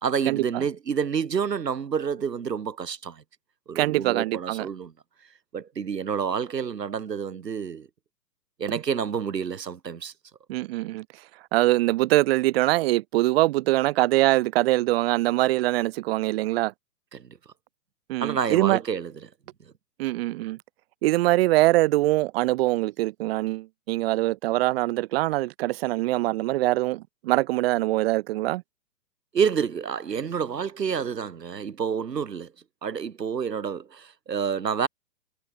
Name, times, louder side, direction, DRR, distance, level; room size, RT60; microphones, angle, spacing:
voice 1, 0.0-3.2 3.7-4.9 5.5-7.9 8.6-10.1 17.1-17.3 18.2-19.3 29.3-32.5 32.8-34.9, right 7 dB, 80° right, 2.6 m, -28 dB
voice 2, 3.7-4.7 10.5-11.0 11.5-16.7 18.1-18.8 20.0-20.6 21.0-28.6, right 18 dB, 35° right, 2.8 m, -23 dB
hypercardioid pair, 140°, 48 cm